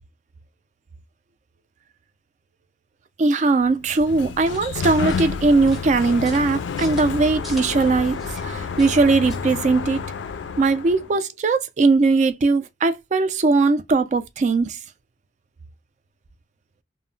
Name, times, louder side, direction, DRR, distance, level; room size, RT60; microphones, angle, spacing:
voice 1, 3.2-10.0 10.6-14.8, right 3 dB, 40° right, 0.3 m, -20 dB
Sliding door, 3.7-11.1, left 5 dB, 75° left, 0.4 m, -30 dB
sound 1, 4.4-9.4, equal, ahead, 0.7 m, -42 dB
2.1 x 2.0 x 3.7 m
head